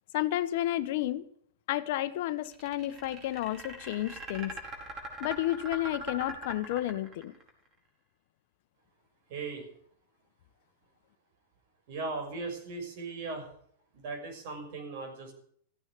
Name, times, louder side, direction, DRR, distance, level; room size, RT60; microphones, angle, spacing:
voice 1, 0.1-1.2 1.7-4.5 5.2-7.3, left 14 dB, 60° left, 1.0 m, -31 dB
sound 1, 2.4-7.5, right 2 dB, 30° right, 4.7 m, -41 dB
voice 2, 9.3-9.6 11.9-13.5 13.9-15.3, right 3 dB, 60° right, 6.2 m, -38 dB
15.0 x 9.1 x 9.6 m
hypercardioid pair, 110°, 0 cm